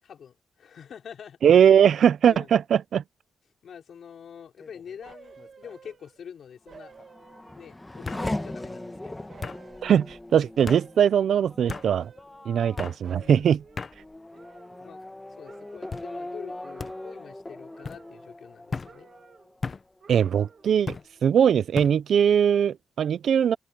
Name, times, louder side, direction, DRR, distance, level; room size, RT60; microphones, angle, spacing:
voice 1, 0.0-1.4 2.3-2.5 3.6-6.9 7.6-9.4 13.1-13.5 14.3-14.4 14.8-15.0 15.4-19.1, left 7 dB, 65° left, 5.0 m, -45 dB
voice 2, 1.4-3.0 9.8-12.1 12.5-13.6 20.1-21.0 21.2-23.6, right 8 dB, 70° right, 0.4 m, -20 dB
sound 1, 4.6-5.0 5.4-5.9 7.0-7.1 8.0-8.3 9.4-9.6 10.7-10.8 11.7-11.9 12.8-13.0 13.8-13.9 14.7-15.1 15.9-16.1 16.8-16.9 17.8-18.0 18.7-18.9 19.6-19.8 20.9-21.1 21.7-21.9, left 4 dB, 35° left, 0.7 m, -35 dB
sound 2, 5.0-6.3 6.7-7.7 8.1-10.2 10.6-11.2 11.6-12.8 13.0-15.2 15.4-16.1 16.6-17.4 17.7-18.6 18.8-19.6 20.0-20.8 21.2-21.3, right 6 dB, 45° right, 2.0 m, -52 dB
Race car auto racing / Accelerating revving vroom, 6.7-20.0 20.4-21.1, left 1 dB, 10° left, 1.4 m, -40 dB
open air
wide cardioid pair, 160°, 0 cm